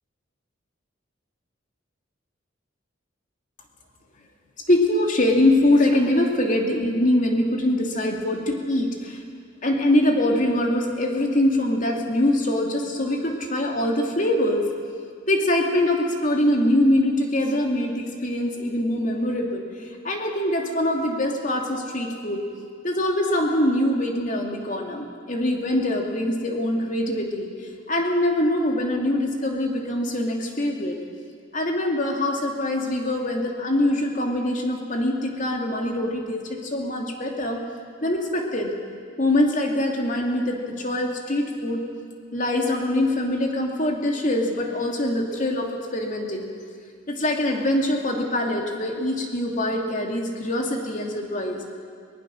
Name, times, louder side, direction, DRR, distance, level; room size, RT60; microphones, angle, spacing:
voice 1, 4.7-9.2 9.6-14.7 15.3-22.4 22.8-27.5 27.9-31.0 31.5-37.6 38.0-38.7 39.2-41.8 42.3-46.5 47.1-51.6, left 1 dB, 45° left, 1 dB, 2.7 m, -23 dB
22.5 x 19.5 x 6.4 m, 2.3 s
head